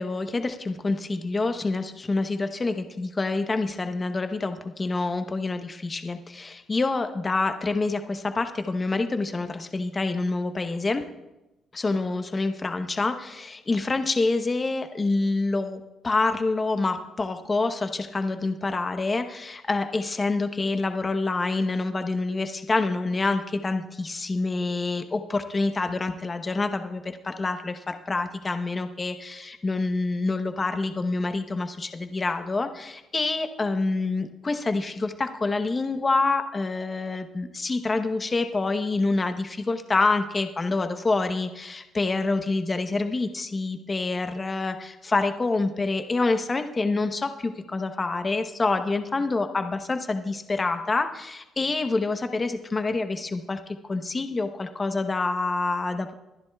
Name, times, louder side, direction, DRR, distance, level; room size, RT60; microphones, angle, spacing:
voice 1, 0.0-11.0 11.7-53.6 53.9-56.1, left 3 dB, 30° left, 7 dB, 0.9 m, -27 dB
23.5 x 10.5 x 2.3 m, 0.96 s
cardioid pair, 100°, 0 cm